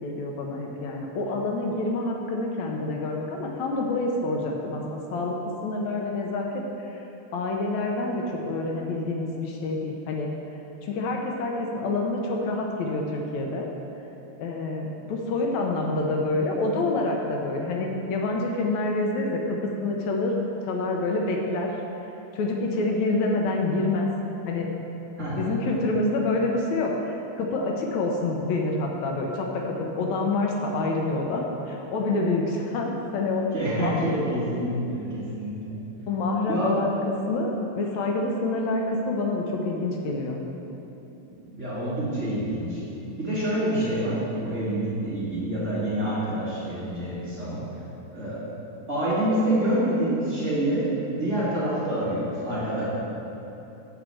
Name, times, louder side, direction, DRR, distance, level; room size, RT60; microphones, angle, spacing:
voice 1, 0.0-5.4 5.6-7.1 7.3-10.3 10.8-13.7 14.4-20.4 20.6-21.7 22.3-24.1 24.5-24.7 25.3-33.4 33.8-34.0 36.1-40.4, left 2 dB, 75° left, 0 dB, 2.0 m, -27 dB
voice 2, 25.2-25.5 33.5-35.8 36.5-36.8 41.3-42.8 43.2-47.6 48.1-48.4 48.9-52.8, right 1 dB, 25° right, -11 dB, 2.1 m, -27 dB
8.0 x 5.1 x 7.6 m, 3.0 s
omnidirectional pair, 3.4 m